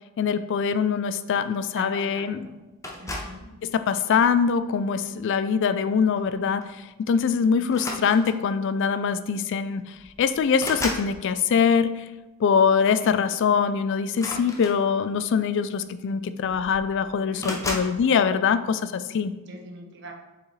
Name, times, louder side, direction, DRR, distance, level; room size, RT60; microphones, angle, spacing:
voice 1, 0.2-2.5 3.6-12.0 12.4-19.3, left 6 dB, 55° left, 12 dB, 0.3 m, -23 dB
voice 2, 1.7-2.6 3.0-3.4 7.3-7.8 13.0-13.2 17.3-17.7 19.4-20.1, right 1 dB, 50° right, 1 dB, 1.0 m, -43 dB
sound 1, 2.8-3.5 4.3-4.7 6.2-6.3 6.6-6.8 7.7-8.5 9.5-9.6 9.9-11.1 14.1-15.2 16.1-16.2 16.4-16.9 17.4-18.0, left 1 dB, 15° left, 0.7 m, -34 dB
7.1 x 4.7 x 3.2 m, 1.1 s
head